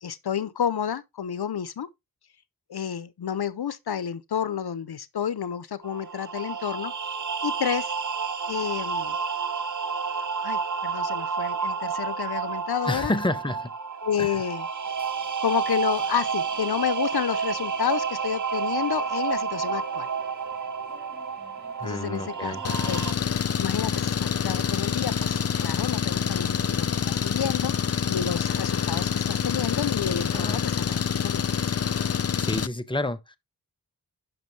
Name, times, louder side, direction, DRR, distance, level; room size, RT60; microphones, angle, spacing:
voice 1, 0.0-1.9 2.7-7.2 7.4-7.9 8.5-9.2 10.4-13.1 14.0-14.7 15.4-20.1 21.8-23.1 23.6-31.5, left 8 dB, 80° left, 0.7 m, -30 dB
sound 1, 5.8-23.1, right 6 dB, 50° right, 0.7 m, -30 dB
voice 2, 12.9-13.7 14.2-14.4 21.8-22.6 30.3-30.6 32.4-33.4, left 2 dB, 15° left, 0.8 m, -29 dB
sound 2, 14.8-31.3, left 2 dB, 15° right, 6.1 m, -53 dB
Engine, 22.6-32.7, left 7 dB, 40° left, 0.5 m, -26 dB
9.0 x 6.0 x 3.2 m
wide cardioid pair, 70°, 38 cm